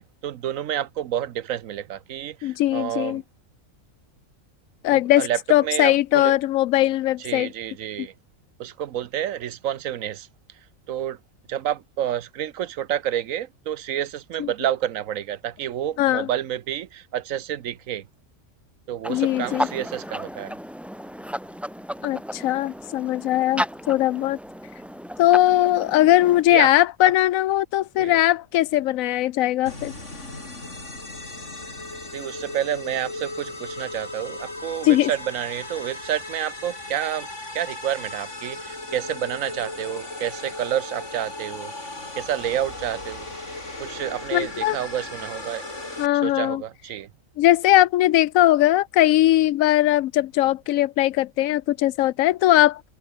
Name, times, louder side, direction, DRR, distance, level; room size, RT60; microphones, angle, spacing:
voice 1, 0.0-3.2 4.9-6.4 7.2-8.1 8.6-10.3 10.9-11.2 11.5-18.1 18.9-20.6 26.5-26.7 27.0-27.1 28.0-28.2 32.1-37.3 37.5-41.7 42.2-43.3 43.8-45.7 46.2-47.1, right 11 dB, 80° right, 1.2 m, -29 dB
voice 2, 2.4-3.2 4.8-7.5 8.0-8.1 14.4-14.5 16.0-16.3 19.1-19.7 22.0-24.4 25.2-29.9 34.8-35.1 44.3-44.8 46.0-46.6 47.4-52.9, left 14 dB, 90° left, 1.0 m, -20 dB
sound 1, 19.0-26.4, equal, ahead, 1.0 m, -33 dB
sound 2, 29.6-46.1, left 2 dB, 60° left, 5.4 m, -37 dB
omnidirectional pair, 1.4 m